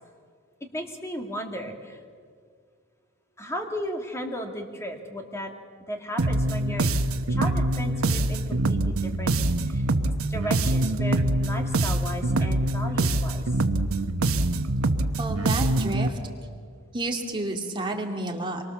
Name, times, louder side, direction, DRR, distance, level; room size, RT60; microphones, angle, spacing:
voice 1, 0.7-2.0 3.4-5.5 5.9-6.9 7.3-9.3 9.6-9.9 10.3-13.5, equal, 15° left, 3 dB, 2.4 m, -35 dB
sound 1, 6.2-16.1, right 2 dB, 80° right, 1.0 m, -24 dB
voice 2, 15.2-16.1 16.9-18.6, right 2 dB, 25° right, 1 dB, 2.6 m, -30 dB
26.5 x 23.5 x 7.2 m, 2.1 s
head